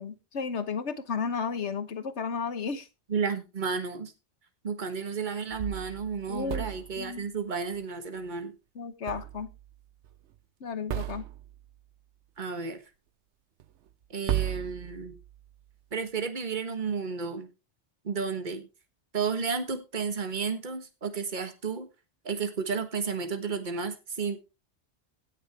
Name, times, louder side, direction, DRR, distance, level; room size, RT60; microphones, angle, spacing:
voice 1, 0.0-2.9 6.3-6.7 7.0-7.2 8.7-9.5 10.6-11.2, left 5 dB, 90° left, 11 dB, 1.5 m, -33 dB
voice 2, 3.1-4.1 4.6-8.5 12.4-12.8 14.1-15.2 15.9-17.5 18.0-18.7 19.1-21.9 22.2-24.4, right 5 dB, 45° right, 8 dB, 1.6 m, -32 dB
sound 1, 5.5-7.1 9.1-9.7 10.0-10.1 10.9-11.7 13.6-13.7 14.3-15.5, right 12 dB, 85° right, 1.1 m, -35 dB
16.5 x 6.8 x 3.5 m, 0.28 s
omnidirectional pair, 1.1 m